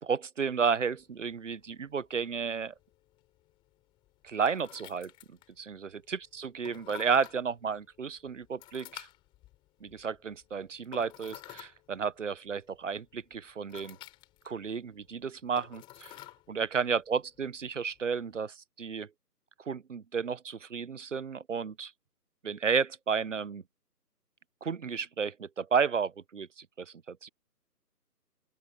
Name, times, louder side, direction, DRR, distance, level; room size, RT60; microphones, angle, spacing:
voice 1, 0.0-2.7 4.2-9.1 9.8-14.0 14.4-16.2 16.5-19.1 19.7-21.9 22.4-23.6 24.6-27.3, right 6 dB, 50° right, 1.0 m, -32 dB
sound 1, 0.9-18.4, left 16 dB, 10° left, 3.6 m, -53 dB
open air
figure-of-eight pair, 160°, 49 cm